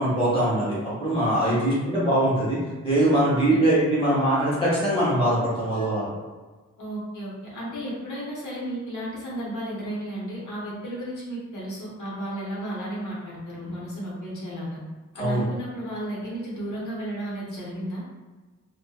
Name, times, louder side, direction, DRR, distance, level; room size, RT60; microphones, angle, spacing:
voice 1, 0.0-6.1 15.2-15.4, right 1 dB, 20° left, -8 dB, 0.9 m, -22 dB
voice 2, 6.8-14.8 15.1-18.0, right 1 dB, 85° left, -6 dB, 0.9 m, -33 dB
2.5 x 2.2 x 2.3 m, 1.3 s
wide cardioid pair, 165°, 30 cm